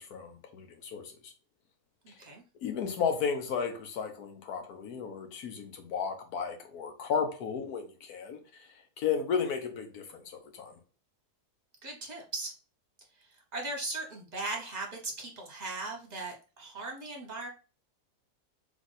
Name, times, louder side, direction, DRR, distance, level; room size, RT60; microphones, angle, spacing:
voice 1, 0.0-1.3 2.6-8.7 9.0-10.2 10.5-10.7, left 6 dB, 70° left, 1.3 m, -34 dB
voice 2, 2.0-2.4 11.8-12.5 13.3-17.5, right 2 dB, 30° right, 1.1 m, -38 dB
3.5 x 3.1 x 4.0 m
omnidirectional pair, 1.7 m